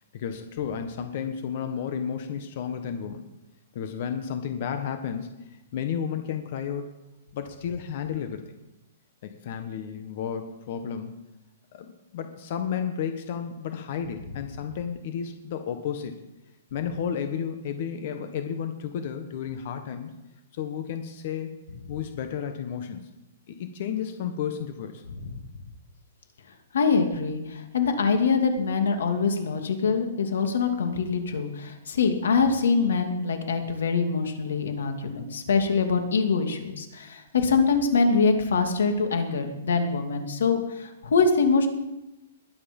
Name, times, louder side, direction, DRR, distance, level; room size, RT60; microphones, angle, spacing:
voice 1, 0.1-3.3 3.7-6.9 7.3-8.4 9.2-11.2 11.7-16.2 16.7-20.1 20.5-21.5 21.9-23.1 23.5-25.0 35.0-35.3, left 8 dB, 45° left, 7 dB, 1.3 m, -32 dB
voice 2, 26.7-41.7, left 4 dB, 90° left, 6 dB, 2.5 m, -24 dB
21.0 x 9.5 x 5.4 m, 0.97 s
hypercardioid pair, 165°, 0 cm